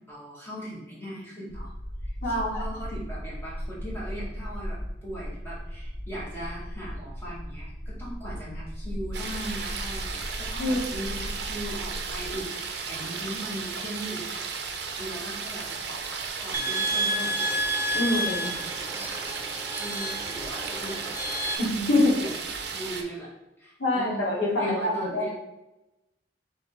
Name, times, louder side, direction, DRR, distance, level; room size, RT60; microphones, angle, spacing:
voice 1, 0.1-1.7 2.0-14.5 15.0-17.6 18.0-19.5 19.7-21.2 22.0-22.3 22.7-23.3 23.6-25.3, equal, 15° left, -7 dB, 1.5 m, -39 dB
sound 1, 1.5-12.4, equal, 50° left, 1.4 m, -37 dB
voice 2, 2.2-2.6 10.6-10.8 17.9-18.5 21.6-22.2 23.8-25.2, left 2 dB, 75° left, -4 dB, 1.5 m, -25 dB
sound 2, 9.1-23.0, right 5 dB, 65° right, 0.5 m, -35 dB
sound 3, 16.5-21.6, right 1 dB, 15° right, 0.3 m, -30 dB
3.7 x 3.3 x 3.9 m, 0.95 s
head